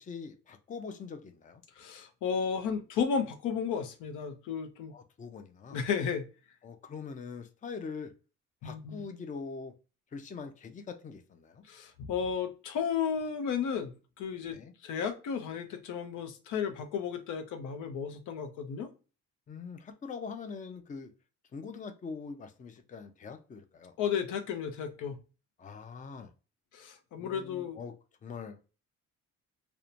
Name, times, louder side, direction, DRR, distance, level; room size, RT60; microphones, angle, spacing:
voice 1, 0.0-1.6 4.9-5.8 6.6-8.1 8.6-9.7 10.1-11.6 14.5-14.7 19.5-21.1 21.5-23.9 25.6-26.3 27.2-27.9 28.2-28.6, left 5 dB, 25° left, 8 dB, 0.4 m, -43 dB
voice 2, 1.8-4.9 5.7-6.3 8.6-9.0 11.7-14.6 14.8-18.9 24.0-25.2 26.7-27.8, left 7 dB, 85° left, 7 dB, 0.6 m, -33 dB
2.9 x 2.1 x 2.4 m, 0.33 s
cardioid pair, 90°, 30 cm